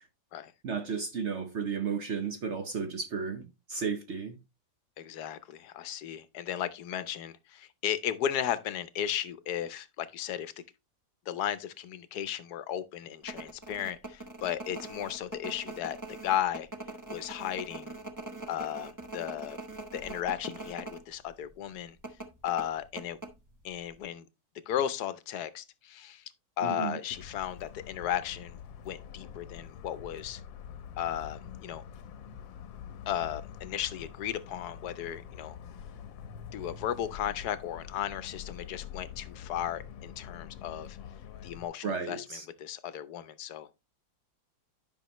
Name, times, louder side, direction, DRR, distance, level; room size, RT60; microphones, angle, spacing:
voice 1, 0.6-4.4 26.6-27.0 41.8-42.4, right 5 dB, 60° right, 0.7 m, -33 dB
voice 2, 5.0-10.5 11.3-16.0 16.2-16.7 17.1-17.9 18.5-19.6 19.9-22.0 22.4-23.2 23.6-24.2 24.7-26.2 26.6-28.6 28.8-30.4 31.0-31.8 33.1-35.6 36.5-41.0 41.4-43.8, left 10 dB, 65° left, 1.1 m, -35 dB
sound 1, 13.2-21.0 21.3-21.4 22.0-23.7 24.0-24.1, right 3 dB, 20° right, 0.5 m, -42 dB
Motor vehicle (road) / Siren, 27.1-41.7, left 8 dB, 80° left, 1.6 m, -46 dB
11.0 x 5.7 x 3.0 m
omnidirectional pair, 2.0 m